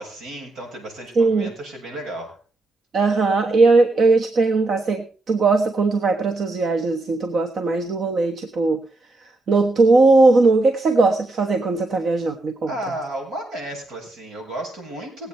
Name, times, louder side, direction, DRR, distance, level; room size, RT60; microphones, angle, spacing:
voice 1, 0.0-2.4 12.7-15.3, right 1 dB, 85° right, 2 dB, 7.3 m, -33 dB
voice 2, 1.2-1.5 2.9-8.8 9.5-12.7, right 3 dB, 60° right, 5 dB, 1.3 m, -19 dB
20.0 x 8.5 x 4.3 m, 0.39 s
cardioid pair, 90°, 0 cm